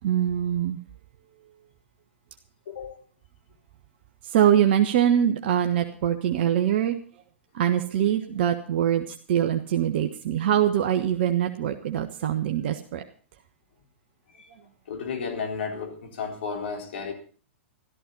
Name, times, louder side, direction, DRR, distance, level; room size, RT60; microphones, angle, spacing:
voice 1, 0.0-0.8 4.2-7.0 7.5-13.0, right 10 dB, 55° right, 5 dB, 1.3 m, -23 dB
voice 2, 2.7-3.0 14.3-14.5 14.9-17.1, left 5 dB, 65° left, 3 dB, 4.0 m, -33 dB
14.0 x 13.5 x 5.6 m, 0.41 s
figure-of-eight pair, 105°, 7 cm